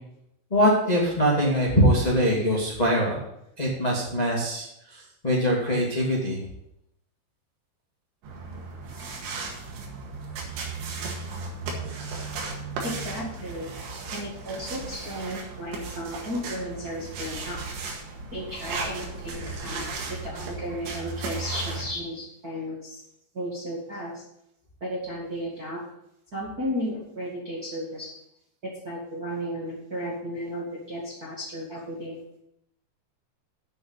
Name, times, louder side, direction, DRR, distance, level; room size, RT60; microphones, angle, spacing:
voice 1, 0.5-3.2 3.6-6.4, equal, 20° left, -3 dB, 1.0 m, -23 dB
sound 1, 8.2-21.9, right 3 dB, 90° right, 4.1 m, -35 dB
voice 2, 12.8-13.7 14.1-17.6 18.3-23.0 23.3-24.2 24.8-25.8 26.3-28.1 28.8-32.1, equal, 35° right, -5 dB, 1.6 m, -34 dB
8.3 x 6.7 x 8.1 m, 0.78 s
omnidirectional pair, 4.9 m